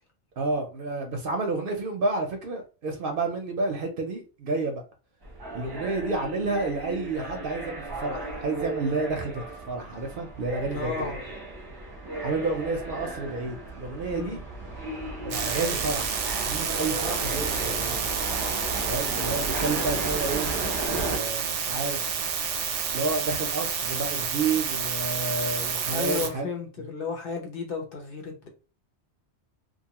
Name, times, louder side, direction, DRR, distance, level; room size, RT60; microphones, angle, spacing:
voice 1, 0.4-4.8 5.5-11.1 12.2-14.4 15.2-18.1 18.9-20.5 20.9-22.2 22.9-26.5, right 3 dB, 60° right, 0.7 m, -30 dB
sound 1, 5.2-21.2, right 2 dB, 25° right, 0.7 m, -35 dB
voice 2, 10.7-11.2 14.1-14.4 25.9-28.5, left 5 dB, 55° left, 0.9 m, -33 dB
sound 2, 15.3-26.3, right 6 dB, 90° right, 0.9 m, -29 dB
2.5 x 2.3 x 2.8 m
omnidirectional pair, 1.2 m